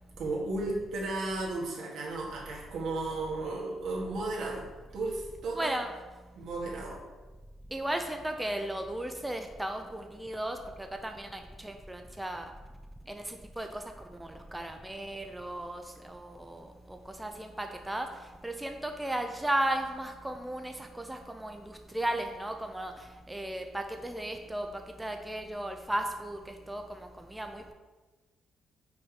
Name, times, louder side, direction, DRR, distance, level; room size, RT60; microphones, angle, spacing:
voice 1, 0.2-5.8 6.4-7.0, right 2 dB, 75° right, -3 dB, 1.9 m, -34 dB
voice 2, 5.5-5.9 7.7-12.5 13.1-13.8 14.1-27.7, right 1 dB, 10° right, 4 dB, 0.5 m, -35 dB
5.8 x 4.0 x 4.7 m, 1.2 s
cardioid pair, 90°, 0 cm